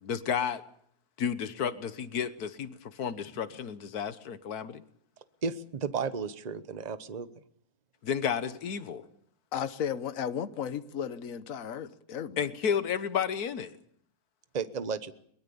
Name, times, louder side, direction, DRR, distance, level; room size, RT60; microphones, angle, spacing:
voice 1, 0.0-0.6 1.2-4.8 8.0-9.0 12.4-13.7, left 7 dB, 85° left, 1.6 m, -32 dB
voice 2, 5.4-7.3 14.5-15.1, right 5 dB, 30° right, 1.1 m, -33 dB
voice 3, 9.5-12.5, left 8 dB, 65° left, 1.5 m, -34 dB
23.0 x 21.5 x 7.0 m
omnidirectional pair, 1.6 m